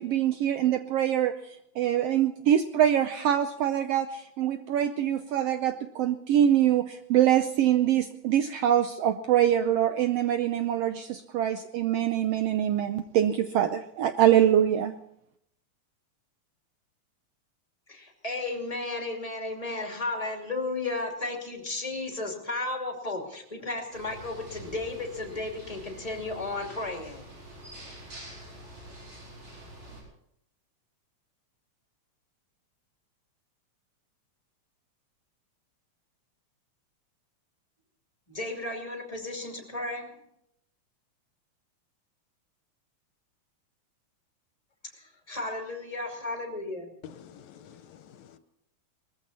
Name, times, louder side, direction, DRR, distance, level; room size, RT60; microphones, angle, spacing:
voice 1, 0.0-14.9, right 10 dB, 75° right, 9 dB, 1.5 m, -24 dB
voice 2, 17.9-27.2 38.3-40.1 45.3-46.9, left 2 dB, 15° left, 2 dB, 2.3 m, -34 dB
sound 1, 23.9-30.0, right 1 dB, 50° right, 5.6 m, -46 dB
voice 3, 47.0-48.4, left 9 dB, 75° left, 12 dB, 2.0 m, -48 dB
20.0 x 14.5 x 4.2 m, 0.76 s
omnidirectional pair, 3.3 m